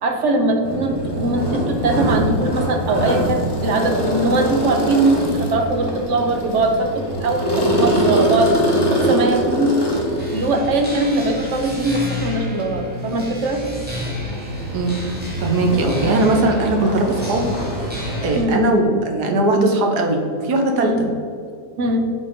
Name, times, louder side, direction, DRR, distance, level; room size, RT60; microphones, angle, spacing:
voice 1, 0.0-9.8 10.3-13.6 18.4-18.6 20.8-21.0 21.8-22.0, right 2 dB, 55° right, 4 dB, 1.0 m, -21 dB
sound 1, 0.6-18.3, right 1 dB, 15° left, 1.1 m, -24 dB
sound 2, 10.2-18.4, left 1 dB, 5° right, 1.8 m, -32 dB
voice 2, 15.4-17.5 18.2-20.9, right 2 dB, 90° right, 3 dB, 1.6 m, -19 dB
7.3 x 4.4 x 5.1 m, 2.3 s
omnidirectional pair, 1.7 m